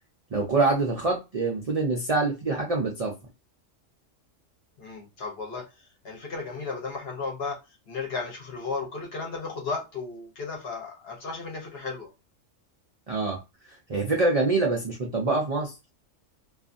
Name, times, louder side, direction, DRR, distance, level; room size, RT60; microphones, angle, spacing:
voice 1, 0.3-3.1 13.1-13.4 13.9-15.7, right 3 dB, 60° right, 0.4 m, -25 dB
voice 2, 4.8-7.6 7.9-12.1, left 4 dB, 55° left, 1.0 m, -34 dB
2.6 x 2.3 x 2.5 m
omnidirectional pair, 1.3 m